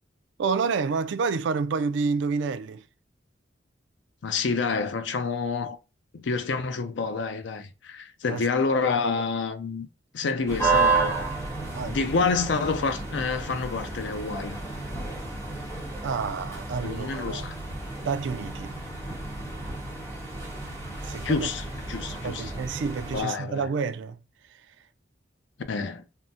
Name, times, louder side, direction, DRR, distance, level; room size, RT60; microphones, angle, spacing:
voice 1, 0.4-2.8 8.3-8.8 11.7-12.0 16.0-17.5 18.0-18.7 21.0-21.5 22.2-24.2, right 5 dB, 70° right, 0.3 m, -29 dB
voice 2, 4.2-5.8 6.1-9.9 10.1-11.2 11.8-14.6 16.8-17.5 21.2-22.5 23.1-23.7 25.7-26.0, left 4 dB, 70° left, 0.5 m, -28 dB
sound 1, 10.5-23.2, right 4 dB, 15° left, 0.9 m, -31 dB
3.7 x 2.1 x 2.6 m
head